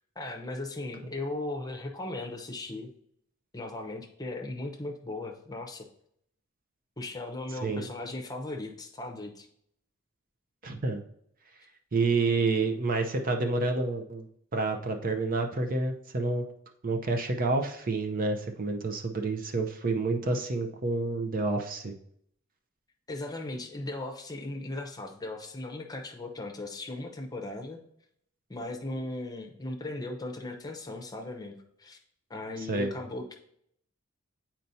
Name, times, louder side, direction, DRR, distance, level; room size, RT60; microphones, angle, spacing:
voice 1, 0.2-2.9 3.5-5.9 7.0-9.5 23.1-27.8 28.5-32.0 32.3-33.3, left 2 dB, 20° left, 3 dB, 0.8 m, -37 dB
voice 2, 10.6-11.0 11.9-14.3 14.5-16.4 16.8-21.9 32.7-32.9, right 3 dB, 45° right, 5 dB, 0.6 m, -29 dB
9.1 x 4.4 x 2.7 m, 0.71 s
head